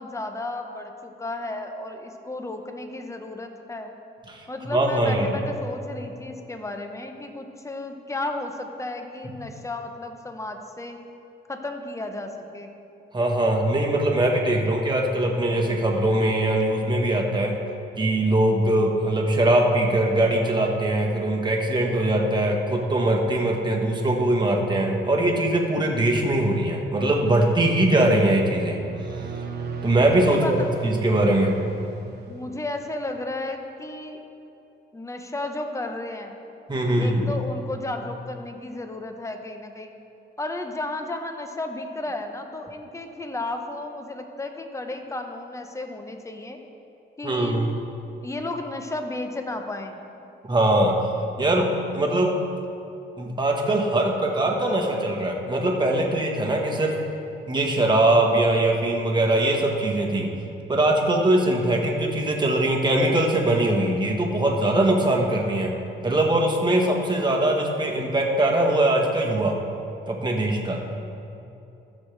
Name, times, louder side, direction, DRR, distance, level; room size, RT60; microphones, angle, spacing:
voice 1, 0.0-3.9 4.5-11.0 11.5-12.7 30.2-30.7 32.3-34.2 34.9-36.4 37.0-39.9 40.4-46.6 47.2-47.6 48.2-50.0, left 2 dB, 15° left, 5 dB, 0.9 m, -33 dB
voice 2, 4.3-5.3 9.2-9.3 13.1-17.6 18.0-28.8 29.8-30.6 30.8-31.6 36.7-37.3 47.2-47.7 50.5-50.9 51.4-52.4 53.2-57.0 57.5-60.3 60.7-65.8 66.0-69.6 70.1-70.8, right 1 dB, 20° right, 0 dB, 1.3 m, -22 dB
sound 1, 28.6-32.9, right 6 dB, 55° right, 1.0 m, -36 dB
14.5 x 6.4 x 3.3 m, 2.8 s
cardioid pair, 90°, 20 cm